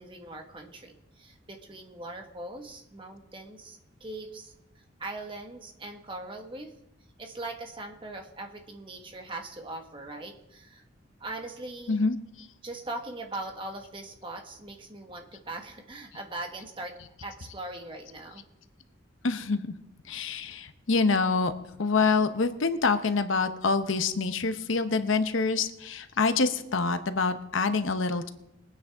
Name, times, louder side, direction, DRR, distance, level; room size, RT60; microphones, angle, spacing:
voice 1, 0.0-4.5 5.0-6.7 7.2-10.8 11.2-12.0 12.6-16.9 17.2-18.4, right 2 dB, 25° right, 3 dB, 1.4 m, -40 dB
voice 2, 11.9-12.5 19.2-19.7 20.1-21.5 21.8-28.3, left 4 dB, 80° left, 10 dB, 0.8 m, -26 dB
21.5 x 9.4 x 3.5 m, 0.87 s
head